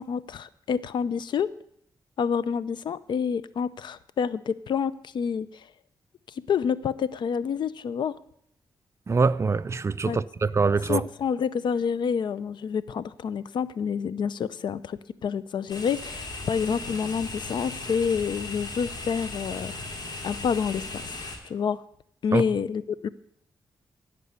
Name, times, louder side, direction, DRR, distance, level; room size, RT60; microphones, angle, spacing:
voice 1, 0.0-1.5 2.2-5.6 6.5-8.2 10.0-10.2 10.9-19.7 20.2-21.1 21.4-21.8 22.2-23.1, left 6 dB, 75° left, 0.6 m, -28 dB
voice 2, 9.1-11.0 22.3-22.4, right 4 dB, 35° right, 0.5 m, -24 dB
sound 1, 15.7-21.4, left 2 dB, 55° left, 3.3 m, -37 dB
15.5 x 5.5 x 8.1 m
cardioid pair, 80°, 8 cm